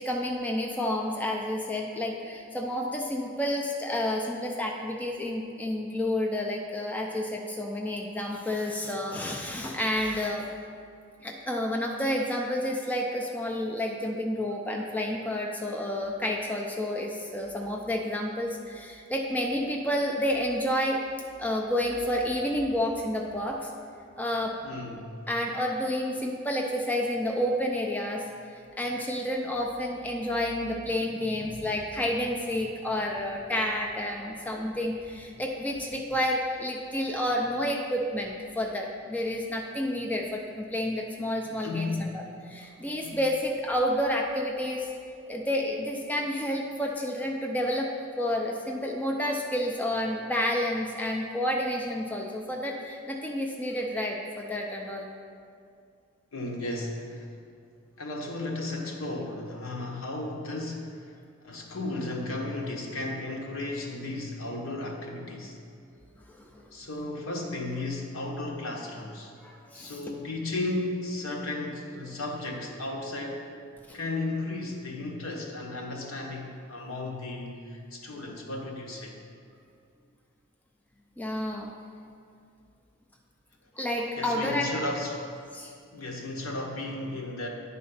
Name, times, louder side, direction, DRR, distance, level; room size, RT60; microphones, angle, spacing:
voice 1, 0.0-10.5 11.2-21.0 21.4-23.7 24.2-24.5 25.3-28.2 28.8-44.9 45.3-47.9 48.2-55.1 66.3-66.7 69.4-70.0 81.2-81.7 83.8-84.7 85.5-85.7, left 1 dB, 5° left, -1 dB, 0.5 m, -30 dB
voice 2, 24.6-25.0 41.6-42.2 43.0-43.2 56.3-57.3 58.0-61.1 61.4-65.6 66.7-69.3 69.7-73.5 73.9-79.2 84.2-85.2 85.9-87.5, left 2 dB, 70° left, -1 dB, 1.2 m, -34 dB
9.9 x 4.2 x 5.6 m, 2.3 s
head